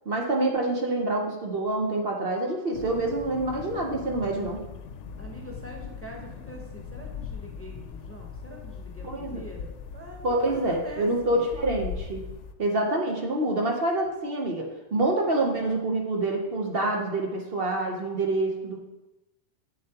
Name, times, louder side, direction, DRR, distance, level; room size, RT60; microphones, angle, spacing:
voice 1, 0.1-4.6 9.0-9.4 10.2-12.2 12.6-18.8, right 2 dB, 55° right, 1 dB, 1.1 m, -27 dB
sound 1, 2.7-12.5, left 6 dB, 75° left, 0.9 m, -40 dB
voice 2, 5.2-11.5 16.8-16.9, right 1 dB, 15° left, -1 dB, 0.8 m, -44 dB
7.7 x 7.1 x 2.9 m, 0.98 s
omnidirectional pair, 1.2 m